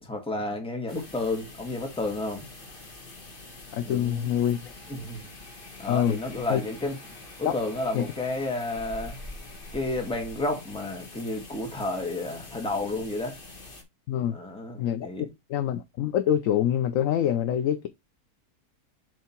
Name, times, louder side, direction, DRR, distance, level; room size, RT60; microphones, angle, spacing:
voice 1, 0.0-2.5 3.8-4.3 4.9-5.3 5.8-7.0 7.4-9.2 9.7-13.4 14.3-15.3, left 2 dB, 5° left, 1.5 m, -31 dB
sound 1, 0.9-13.8, left 2 dB, 35° left, 1.7 m, -45 dB
voice 2, 3.7-4.7 5.9-6.2 6.5-6.6 7.4-7.5 7.9-8.0 14.1-14.4 14.8-17.9, left 10 dB, 65° left, 0.9 m, -25 dB
7.5 x 3.4 x 4.4 m
omnidirectional pair, 1.7 m